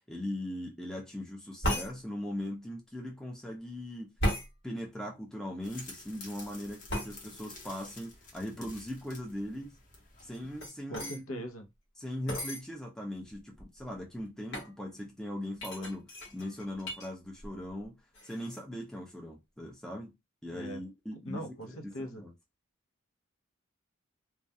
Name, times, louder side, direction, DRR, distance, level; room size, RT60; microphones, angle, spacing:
voice 1, 0.0-4.1 4.6-9.8 10.2-11.4 12.0-18.0 18.2-20.1 20.4-22.3, left 1 dB, 5° left, 0.4 m, -40 dB
sound 1, 1.6-1.9 4.2-4.5 6.9-7.1 10.2-11.2 12.3-12.6 13.3-13.4 13.6-14.0 14.5-14.7 15.6-17.1 17.4-17.8 18.1-18.6, equal, 55° left, 1.1 m, -34 dB
sound 2, 5.6-10.7, left 3 dB, 40° left, 0.8 m, -51 dB
voice 2, 10.9-11.7 20.5-20.8 21.3-22.3, equal, 80° left, 0.6 m, -41 dB
2.3 x 2.2 x 2.6 m
head